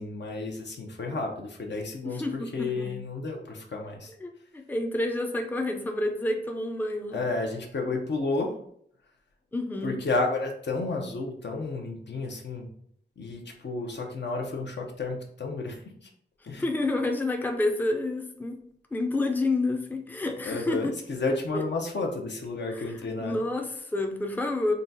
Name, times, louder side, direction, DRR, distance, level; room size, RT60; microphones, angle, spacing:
voice 1, 0.0-4.1 7.1-8.5 9.8-12.7 13.2-16.1 16.4-16.7 20.4-23.4, left 3 dB, 70° left, 1 dB, 0.8 m, -31 dB
voice 2, 2.0-3.0 4.2-7.2 9.5-10.0 16.5-18.6 18.9-20.9 21.5-21.6 22.7-22.8 23.2-24.7, left 2 dB, 10° left, 4 dB, 0.4 m, -29 dB
3.9 x 2.3 x 3.9 m, 0.66 s
wide cardioid pair, 95°, 19 cm